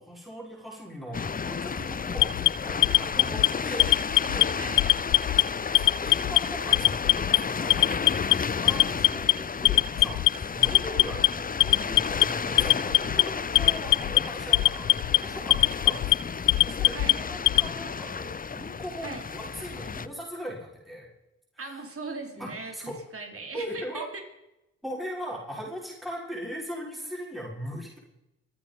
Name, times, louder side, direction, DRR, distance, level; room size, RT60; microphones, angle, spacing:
voice 1, 0.0-3.9 4.3-4.5 5.7-21.1 21.6-21.8 22.4-23.0 23.5-24.1 24.8-28.0, equal, ahead, -3 dB, 6.2 m, -39 dB
sound 1, 1.1-20.1, left 6 dB, 25° left, 0.6 m, -32 dB
Alarm, 2.2-3.5 3.8-4.4 4.8-5.4 5.7-6.4 6.7-7.4 7.7-8.3 8.7-9.3 9.6-10.3 10.6-11.3 11.6-12.2 12.6-13.2 13.5-14.2 14.5-15.2 15.5-16.1 16.5-17.7, left 19 dB, 70° left, 0.5 m, -20 dB
voice 2, 4.5-4.9 16.9-17.2 19.0-19.2 21.6-24.0, right 3 dB, 40° right, 2 dB, 4.7 m, -39 dB
25.0 x 9.2 x 5.4 m, 0.91 s
supercardioid pair, 50°, 33 cm